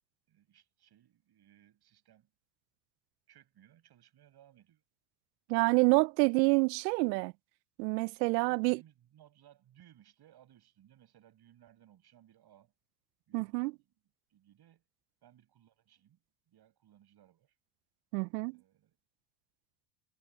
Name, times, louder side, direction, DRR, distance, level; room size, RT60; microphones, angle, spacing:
voice 1, 0.3-2.3 3.3-4.8 6.3-6.6 8.4-12.7 13.3-13.9 14.3-14.8 15.2-17.6 18.5-19.0, right 11 dB, 50° right, 7.8 m, -63 dB
voice 2, 5.5-7.3 7.8-8.8 13.3-13.7 18.1-18.6, right 26 dB, 85° right, 0.6 m, -27 dB
hypercardioid pair, 80°, 48 cm